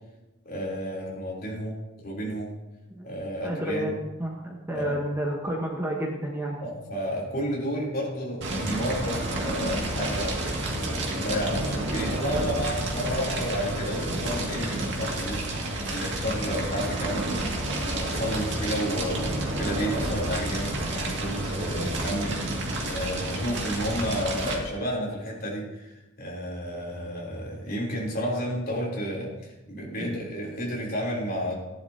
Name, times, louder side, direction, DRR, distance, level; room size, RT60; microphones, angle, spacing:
voice 1, 0.5-2.5 3.0-4.0 4.7-5.0 6.6-10.3 10.7-31.5, equal, 45° left, -4 dB, 3.7 m, -31 dB
voice 2, 3.4-6.6 12.2-12.5 22.7-23.0 30.0-30.2, right 1 dB, 10° right, -2 dB, 1.2 m, -31 dB
Fire, 8.4-24.6, right 1 dB, 60° right, 2.3 m, -30 dB
16.0 x 11.0 x 2.9 m, 1.0 s
head